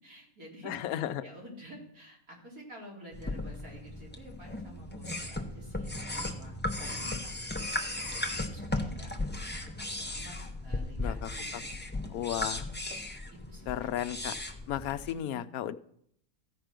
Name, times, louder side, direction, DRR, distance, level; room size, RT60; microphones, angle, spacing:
voice 1, 0.0-9.1 9.5-10.3 10.6-12.8 13.3-13.9 15.1-15.5, equal, 85° right, -3 dB, 3.3 m, -50 dB
voice 2, 0.6-1.3 11.0-11.6 12.1-12.7 13.7-14.4 14.7-15.8, left 11 dB, 85° left, 13 dB, 1.0 m, -34 dB
sound 1, 3.1-15.1, left 2 dB, 10° left, 0.6 m, -36 dB
14.5 x 5.0 x 6.0 m, 0.67 s
omnidirectional pair, 1.5 m